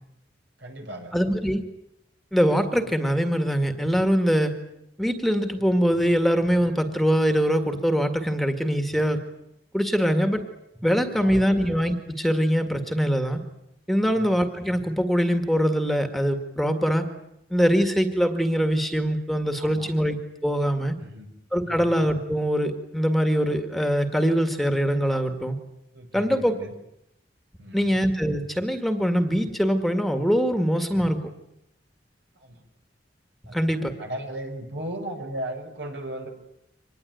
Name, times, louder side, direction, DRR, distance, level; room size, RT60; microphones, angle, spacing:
voice 1, 0.6-1.2 11.0-11.6 14.0-14.3 19.6-19.9 21.0-21.3 21.7-22.0 25.9-26.7 27.6-27.9 32.4-32.6 33.5-36.3, right 1 dB, 75° right, 4 dB, 5.2 m, -37 dB
voice 2, 1.1-1.6 2.3-4.5 5.0-9.2 9.7-10.4 10.8-13.4 13.9-17.1 17.5-20.2 20.4-20.9 21.5-25.6 26.1-26.5 27.7-31.2 33.5-33.9, equal, ahead, 7 dB, 1.9 m, -23 dB
25.0 x 20.0 x 9.4 m, 0.82 s
head